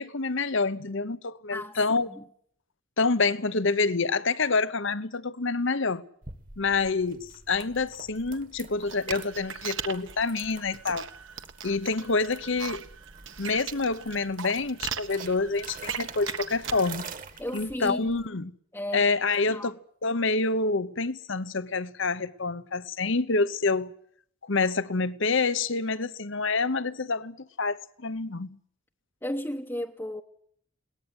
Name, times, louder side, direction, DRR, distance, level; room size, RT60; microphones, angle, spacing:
voice 1, 0.0-2.1 3.0-6.0 6.6-11.1 11.6-12.8 13.4-17.1 17.5-18.5 18.9-23.9 24.5-28.6, left 3 dB, 60° left, 1.0 m, -27 dB
sound 1, 6.2-18.3, right 5 dB, 40° right, 1.7 m, -47 dB
sound 2, 8.8-17.0, right 8 dB, 60° right, 1.4 m, -38 dB
voice 2, 17.4-18.2 18.7-19.1 19.5-19.7 29.2-30.2, left 1 dB, 10° left, 0.9 m, -34 dB
22.0 x 19.0 x 8.1 m
head